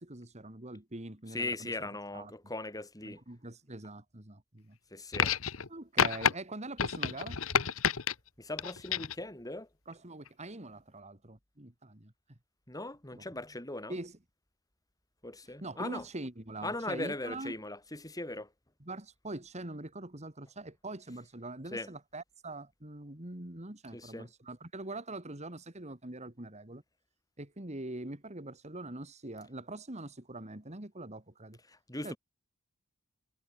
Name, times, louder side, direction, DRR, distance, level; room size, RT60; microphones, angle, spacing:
voice 1, 0.0-1.7 2.1-2.3 3.0-4.8 5.7-7.4 9.9-12.1 13.1-13.2 13.9-14.2 15.6-17.6 18.8-26.8 27.4-31.6 32.0-32.1, right 2 dB, 30° right, 2.5 m, -43 dB
voice 2, 1.3-3.2 4.9-5.3 8.4-9.7 12.7-14.0 15.2-16.0 16.6-18.5 21.7-21.9 23.9-24.3 31.7-32.2, left 2 dB, 15° left, 5.4 m, -39 dB
sound 1, 5.1-5.7 6.0-6.3 6.8-8.1 8.6-9.2 10.3-10.4, left 7 dB, 70° left, 1.2 m, -29 dB
head